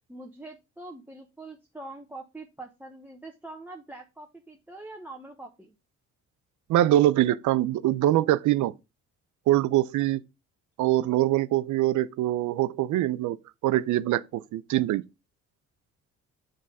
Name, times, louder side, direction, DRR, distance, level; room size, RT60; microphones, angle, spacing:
voice 1, 0.1-5.7 14.5-14.7, right 2 dB, 5° right, 0.8 m, -44 dB
voice 2, 6.7-8.7 9.5-10.2 10.8-13.4 13.6-15.0, right 14 dB, 75° right, 0.5 m, -23 dB
6.3 x 3.9 x 5.2 m
cardioid pair, 90°, 30 cm